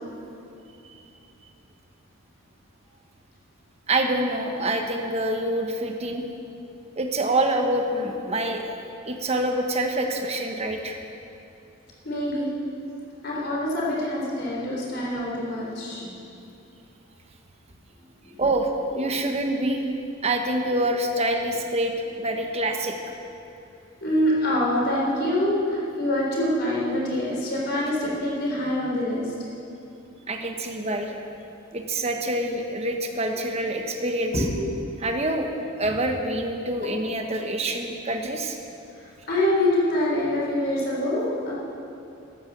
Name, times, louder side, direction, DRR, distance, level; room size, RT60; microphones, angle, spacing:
voice 1, 3.9-6.2 7.0-11.0 18.4-19.8 20.2-23.0 30.3-31.1 31.7-34.3 35.0-35.5 35.8-38.6, right 1 dB, 30° right, 4 dB, 1.2 m, -26 dB
voice 2, 12.0-12.5 13.2-16.2 18.0-18.4 24.0-29.3 34.3-34.7 39.3-41.5, left 1 dB, 50° left, -4 dB, 3.9 m, -25 dB
13.0 x 10.5 x 7.4 m, 2.7 s
head